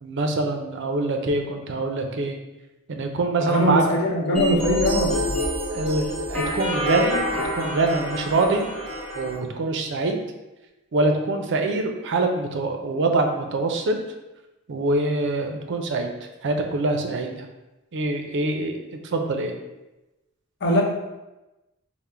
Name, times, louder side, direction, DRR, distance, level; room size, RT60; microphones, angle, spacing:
voice 1, 0.0-2.4 2.9-3.8 5.7-7.3 7.5-8.7 9.1-10.2 10.9-14.0 14.7-16.1 16.4-17.5 17.9-19.5, right 2 dB, 60° right, 4 dB, 0.5 m, -24 dB
voice 2, 3.4-5.3 20.6-20.8, left 1 dB, 55° left, -2 dB, 0.8 m, -21 dB
sound 1, 4.3-9.3, equal, 5° left, 1.4 m, -27 dB
3.6 x 2.1 x 4.3 m, 1.0 s
head